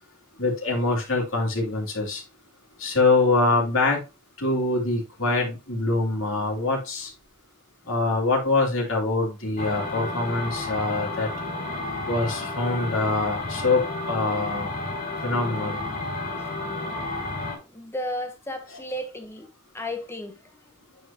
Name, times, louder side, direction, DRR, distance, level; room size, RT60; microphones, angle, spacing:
voice 1, 0.4-2.2 2.8-4.0 4.4-7.1 7.9-11.3 12.1-14.7 15.2-15.8, left 3 dB, 65° left, 2.8 m, -24 dB
sound 1, 9.6-17.6, left 2 dB, 45° left, 2.5 m, -31 dB
voice 2, 17.6-20.6, left 1 dB, 10° left, 1.0 m, -34 dB
9.6 x 4.5 x 2.9 m
head